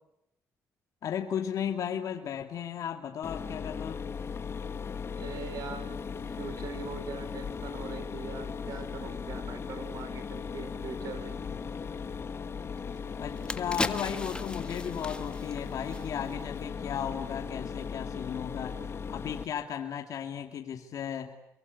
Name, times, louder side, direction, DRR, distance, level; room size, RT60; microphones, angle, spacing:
voice 1, 1.0-4.0 13.2-18.8 19.1-21.4, left 8 dB, 65° left, 4 dB, 2.6 m, -35 dB
Mechanisms, 3.2-19.4, left 6 dB, 45° left, 1.9 m, -37 dB
voice 2, 5.1-11.4, right 6 dB, 75° right, 10 dB, 5.8 m, -42 dB
sound 1, 12.8-12.9 13.3-16.5 16.8-17.0, left 2 dB, 15° left, 1.7 m, -37 dB
29.5 x 23.5 x 8.5 m, 0.82 s
cardioid pair, 95°, 6 cm